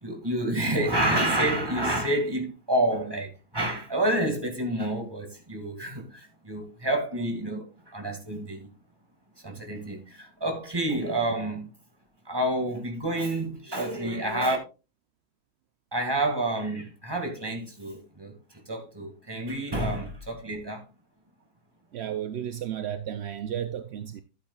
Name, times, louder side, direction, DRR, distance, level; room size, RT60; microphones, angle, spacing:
voice 1, 0.0-8.7 9.4-11.7 12.3-14.6 15.9-20.9, right 1 dB, 15° right, 1.9 m, -29 dB
voice 2, 21.9-24.2, right 10 dB, 65° right, 0.6 m, -33 dB
12.0 x 8.8 x 2.3 m
omnidirectional pair, 1.7 m